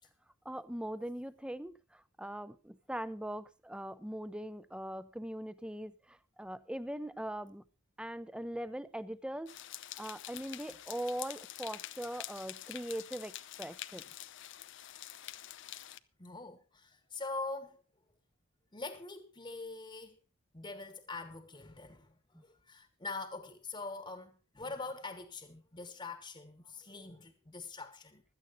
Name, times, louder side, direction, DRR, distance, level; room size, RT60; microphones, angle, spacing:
voice 1, 0.4-7.6 8.0-9.5 10.0-14.1 22.3-22.4, right 1 dB, 5° right, 0.6 m, -41 dB
sound 1, 9.5-16.0, left 13 dB, 55° left, 0.6 m, -47 dB
voice 2, 16.2-17.8 18.7-20.2 20.5-22.1 22.4-28.2, left 3 dB, 25° left, 1.2 m, -43 dB
16.0 x 12.5 x 4.0 m
head